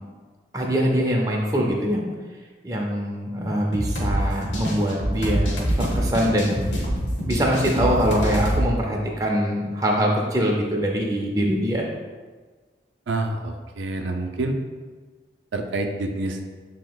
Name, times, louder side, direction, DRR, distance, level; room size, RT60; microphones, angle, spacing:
voice 1, 0.5-2.1 2.6-6.6 7.2-11.8, equal, 20° right, -1 dB, 0.5 m, -23 dB
sound 1, 3.7-8.6, equal, 85° left, 1.0 m, -25 dB
voice 2, 6.0-6.3 13.1-14.6 15.5-16.4, right 2 dB, 90° right, 4 dB, 0.5 m, -28 dB
7.7 x 2.9 x 2.3 m, 1.4 s
head